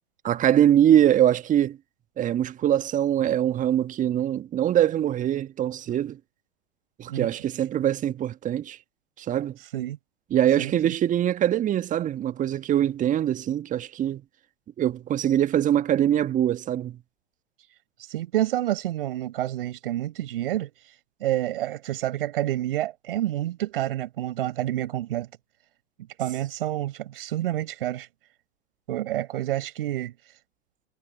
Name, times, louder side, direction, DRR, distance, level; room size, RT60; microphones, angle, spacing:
voice 1, 0.2-1.8 2.2-6.2 7.0-8.8 9.2-9.6 10.3-14.2 14.8-17.0, right 11 dB, 25° right, 1.6 m, -23 dB
voice 2, 10.6-10.9 18.0-20.7 21.2-25.3 26.2-28.1 28.9-30.1, right 13 dB, 60° right, 6.2 m, -28 dB
figure-of-eight pair, 100°, 32 cm